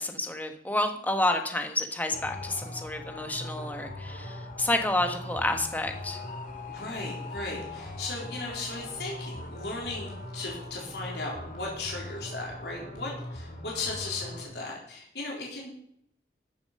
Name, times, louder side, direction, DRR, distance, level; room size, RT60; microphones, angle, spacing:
voice 1, 0.0-6.2, left 1 dB, 10° left, 6 dB, 1.3 m, -29 dB
sound 1, 2.1-14.5, left 1 dB, 50° left, 2.6 m, -40 dB
voice 2, 6.7-15.7, left 3 dB, 70° left, -3 dB, 4.0 m, -36 dB
14.5 x 7.2 x 6.7 m, 0.70 s
head